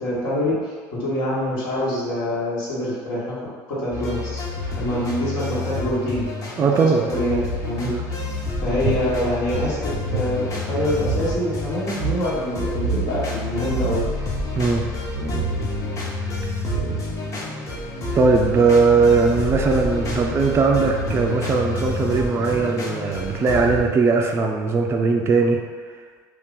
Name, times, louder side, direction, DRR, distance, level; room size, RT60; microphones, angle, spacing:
voice 1, 0.0-3.4 3.7-4.4 4.7-6.5 7.1-7.4 7.6-7.9 8.2-8.3 8.6-14.0, left 1 dB, 75° left, -9 dB, 1.1 m, -25 dB
sound 1, 3.9-23.8, left 2 dB, 35° left, 0.8 m, -28 dB
voice 2, 6.6-7.1 7.9-8.0 14.6-14.9 18.1-25.6, right 4 dB, 30° right, 2 dB, 0.4 m, -19 dB
sound 2, 8.8-11.3 11.6-11.7 11.9-12.2 12.8-13.3 13.6-14.2 15.1-15.5 16.3-16.4 16.7-17.3, right 8 dB, 85° right, 0.7 m, -27 dB
2.7 x 2.4 x 3.6 m, 1.6 s
supercardioid pair, 105°, 9 cm